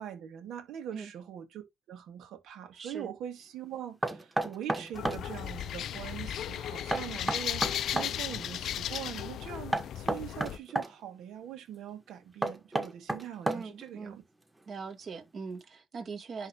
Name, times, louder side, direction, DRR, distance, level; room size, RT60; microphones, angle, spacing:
voice 1, 0.0-14.2, right 10 dB, 85° right, 2.2 m, -42 dB
voice 2, 2.7-3.1 13.5-14.2 14.7-16.5, right 5 dB, 50° right, 2.0 m, -41 dB
Knock, 4.0-5.2 6.9-8.1 9.7-10.9 12.4-13.8, right 1 dB, 15° right, 1.5 m, -31 dB
sound 1, 4.9-10.6, left 10 dB, 75° left, 0.5 m, -36 dB
11.0 x 3.6 x 3.0 m
cardioid pair, 90°, 0 cm